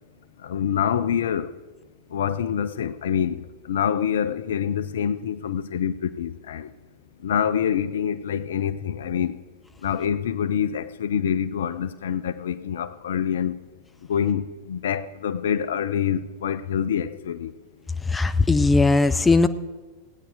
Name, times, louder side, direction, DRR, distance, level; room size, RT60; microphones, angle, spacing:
voice 1, 0.4-1.5 2.1-6.7 7.2-9.4 9.8-13.6 14.1-17.5, left 8 dB, 60° left, 0.4 m, -26 dB
voice 2, 18.1-19.5, left 3 dB, 10° left, 0.5 m, -18 dB
16.0 x 9.1 x 4.8 m
figure-of-eight pair, 90°, 0 cm